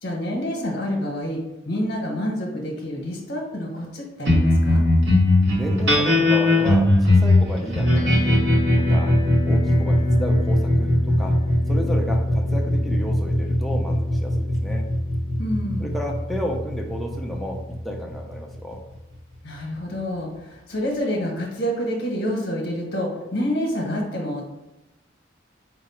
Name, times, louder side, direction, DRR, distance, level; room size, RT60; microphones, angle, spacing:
voice 1, 0.0-4.8 15.4-16.0 19.4-24.5, equal, 65° left, -1 dB, 0.9 m, -28 dB
sound 1, 4.3-18.9, left 1 dB, 70° right, 0.9 m, -20 dB
voice 2, 5.6-9.2 9.4-11.4 11.7-14.9 15.8-18.8, equal, ahead, 0 dB, 0.4 m, -32 dB
4.6 x 2.0 x 4.3 m, 0.94 s
head